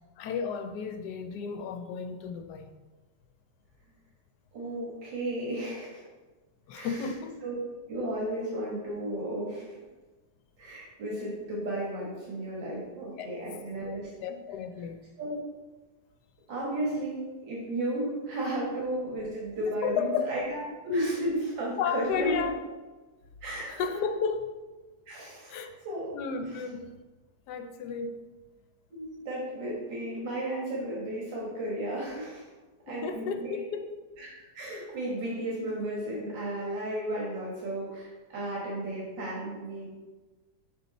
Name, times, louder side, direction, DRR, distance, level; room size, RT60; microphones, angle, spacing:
voice 1, 0.2-2.8 6.7-7.4 13.2-13.3 13.8-15.0 18.7-18.8 19.8-20.3 21.8-22.6 23.7-24.5 25.5-25.8 26.1-27.0 27.5-28.3 32.9-34.0, left 6 dB, 75° left, 1.1 m, -33 dB
voice 2, 4.5-6.0 6.7-7.1 7.4-7.6 7.9-9.8 10.6-14.1 15.2-15.3 16.5-22.4 23.4-23.9 25.1-26.1 28.9-32.5 32.9-33.6 34.2-40.0, right 1 dB, 90° right, 2.2 m, -34 dB
6.2 x 5.6 x 4.0 m
omnidirectional pair, 1.9 m